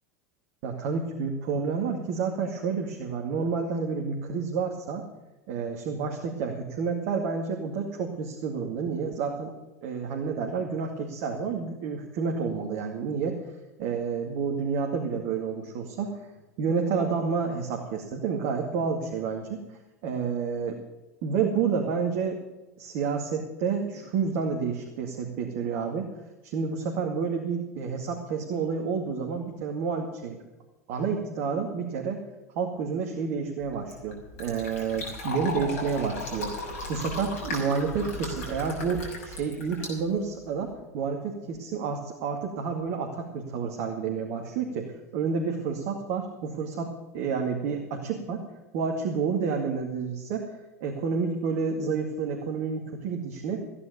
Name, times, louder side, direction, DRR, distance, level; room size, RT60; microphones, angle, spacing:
voice 1, 0.6-5.0 5.5-9.5 9.8-13.4 13.8-16.3 16.6-19.6 20.0-20.8 21.2-22.4 22.8-26.1 26.4-30.4 30.9-32.2 32.5-48.4 48.7-53.6, right 5 dB, 50° right, 1 dB, 2.2 m, -29 dB
Fill (with liquid), 33.6-40.7, left 2 dB, 60° left, 6.3 m, -37 dB
16.0 x 9.9 x 7.0 m, 1.0 s
figure-of-eight pair, 85°, 8 cm